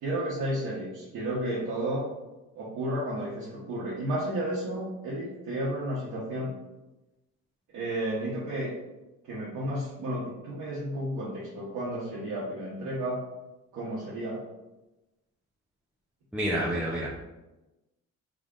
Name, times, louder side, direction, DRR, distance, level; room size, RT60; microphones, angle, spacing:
voice 1, 0.0-2.1 2.6-6.5 7.7-8.7 9.2-13.2 13.7-14.4, right 1 dB, 80° right, -8 dB, 1.0 m, -32 dB
voice 2, 16.3-17.1, right 1 dB, 5° right, -5 dB, 0.6 m, -28 dB
3.6 x 3.5 x 2.5 m, 1.0 s
cardioid pair, 90°, 30 cm